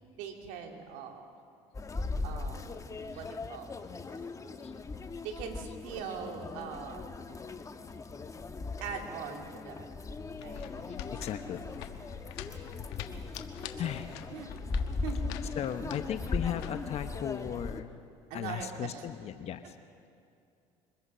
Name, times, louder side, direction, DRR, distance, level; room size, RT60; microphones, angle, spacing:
voice 1, 0.2-1.2 2.2-2.8 3.2-3.7 5.2-7.2 8.8-9.9 10.4-10.6 13.8-13.9 14.3-14.6 15.0-15.3 18.3-18.9, right 7 dB, 75° right, 3 dB, 2.6 m, -41 dB
sound 1, 1.7-17.8, left 3 dB, 25° left, 1.2 m, -39 dB
voice 2, 1.8-2.8 3.1-3.9 4.6-4.9 5.6-5.8 6.3-6.4 10.5-13.5 13.8-14.1 15.5-18.0 18.3-19.8, left 10 dB, 55° left, 9 dB, 1.0 m, -39 dB
sound 2, 10.1-17.5, left 10 dB, 85° left, 1.2 m, -46 dB
23.0 x 20.5 x 5.6 m, 2.5 s
supercardioid pair, 85°, 13 cm